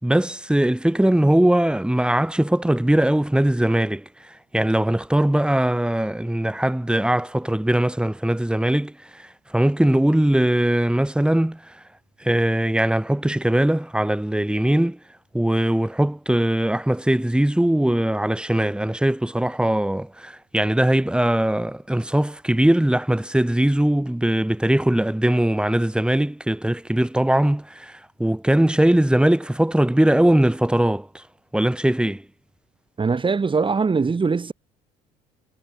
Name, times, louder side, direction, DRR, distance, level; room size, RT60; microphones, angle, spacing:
voice 1, 0.0-11.7 12.2-15.0 15.3-31.2 31.5-32.2, right 1 dB, 5° right, 4.6 m, -20 dB
voice 2, 33.0-34.5, right 4 dB, 30° right, 4.3 m, -21 dB
supercardioid pair, 75°, 18 cm